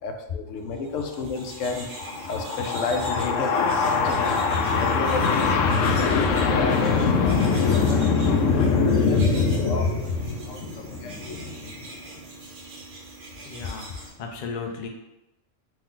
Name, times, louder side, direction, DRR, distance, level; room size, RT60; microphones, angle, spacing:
voice 1, 0.0-12.4, left 4 dB, 80° left, 5 dB, 0.9 m, -23 dB
sound 1, 0.8-14.1, right 3 dB, 55° right, 1.1 m, -42 dB
voice 2, 13.4-14.9, left 5 dB, 45° left, 2 dB, 0.6 m, -34 dB
4.4 x 3.2 x 3.7 m, 0.92 s
omnidirectional pair, 1.3 m